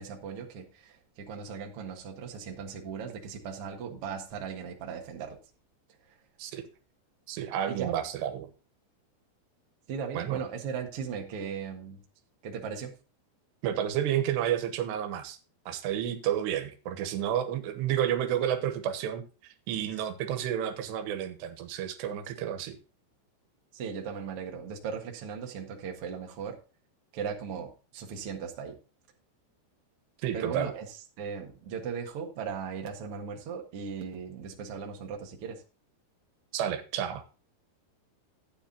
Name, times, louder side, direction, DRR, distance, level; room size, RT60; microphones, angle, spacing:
voice 1, 0.0-5.4 7.7-8.0 9.9-12.0 12.4-12.9 23.7-26.6 27.1-28.8 30.3-30.9 31.2-35.6, right 6 dB, 50° right, 2 dB, 1.8 m, -37 dB
voice 2, 7.3-8.5 10.1-10.4 13.6-15.4 15.7-22.8 30.2-30.7 36.5-37.2, right 10 dB, 90° right, 8 dB, 3.3 m, -31 dB
13.0 x 9.1 x 2.7 m, 0.33 s
omnidirectional pair, 4.8 m